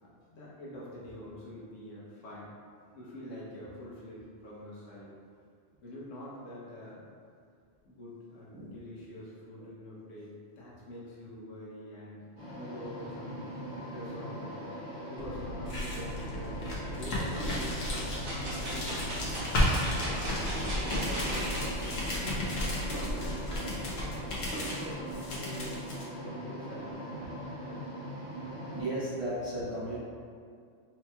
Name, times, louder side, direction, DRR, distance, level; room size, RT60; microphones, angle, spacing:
voice 1, 0.0-2.5 2.9-5.1 5.8-7.1 7.8-10.3 10.6-12.2 12.5-13.4 13.7-14.8 15.1-18.4 18.7-19.3 19.9-26.9 27.6-27.8, equal, 90° left, -7 dB, 1.2 m, -46 dB
sound 1, 12.4-28.8, equal, 15° left, 1.3 m, -40 dB
sound 2, 15.2-26.0, left 1 dB, 60° left, 0.9 m, -34 dB
sound 3, 18.2-21.9 22.4-22.5, right 1 dB, 55° right, 1.2 m, -37 dB
voice 2, 28.7-30.0, right 1 dB, 40° right, -9 dB, 0.5 m, -34 dB
4.3 x 2.9 x 2.2 m, 2.2 s
omnidirectional pair, 1.2 m